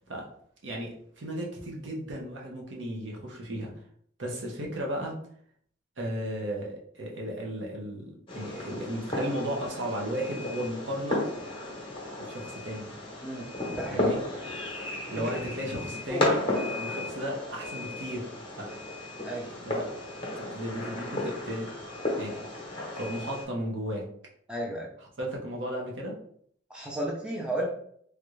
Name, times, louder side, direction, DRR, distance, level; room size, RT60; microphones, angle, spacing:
voice 1, 0.6-3.7 4.2-5.1 6.0-11.2 12.2-12.9 13.9-14.2 15.1-16.4 16.7-18.3 18.6-18.7 19.5-19.9 20.3-21.7 22.1-22.6 22.9-24.1 25.2-26.2, equal, 80° right, -1 dB, 0.8 m, -35 dB
Fireworks, 8.3-23.4, left 1 dB, 25° left, 0.9 m, -34 dB
voice 2, 13.2-14.1 15.2-15.3 16.1-16.2 19.2-19.5 24.5-24.9 26.7-27.7, right 1 dB, 5° right, -2 dB, 0.5 m, -33 dB
3.3 x 2.4 x 3.1 m, 0.64 s
head